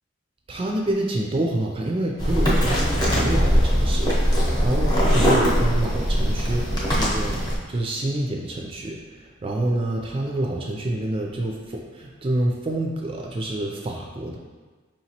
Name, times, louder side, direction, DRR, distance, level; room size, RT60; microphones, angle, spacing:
voice 1, 0.5-14.4, right 1 dB, 25° right, 0 dB, 0.3 m, -27 dB
sound 1, 2.2-7.6, equal, 20° left, 0.7 m, -21 dB
4.9 x 2.9 x 2.8 m, 1.4 s
head